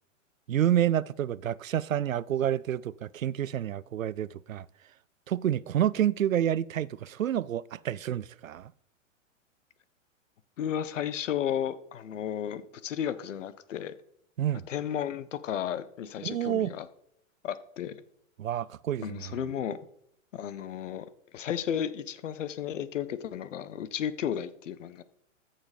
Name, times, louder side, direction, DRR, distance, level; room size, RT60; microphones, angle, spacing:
voice 1, 0.5-4.7 5.3-8.7 14.4-14.7 16.2-16.7 18.4-19.3, right 11 dB, 90° right, 0.6 m, -29 dB
voice 2, 10.6-13.9 14.7-16.9 17.4-18.0 19.0-19.8 20.3-21.1 21.3-25.0, left 9 dB, 70° left, 1.2 m, -33 dB
14.0 x 7.2 x 5.1 m
hypercardioid pair, 115°, 39 cm